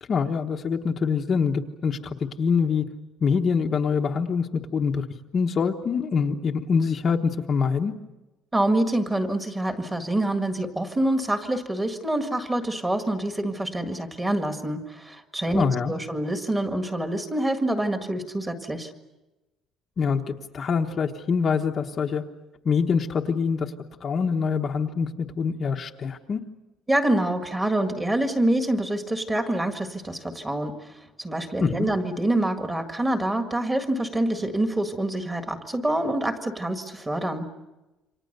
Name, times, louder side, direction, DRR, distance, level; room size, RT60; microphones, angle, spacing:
voice 1, 0.1-2.9 3.2-5.1 5.3-7.9 15.5-15.9 20.0-22.2 22.6-23.7 24.0-26.4 31.6-31.9, left 5 dB, 30° left, 2 dB, 1.1 m, -25 dB
voice 2, 8.5-18.9 26.9-37.5, right 1 dB, 10° right, 6 dB, 1.8 m, -26 dB
28.5 x 25.5 x 6.7 m, 1.1 s
cardioid pair, 175°, 0 cm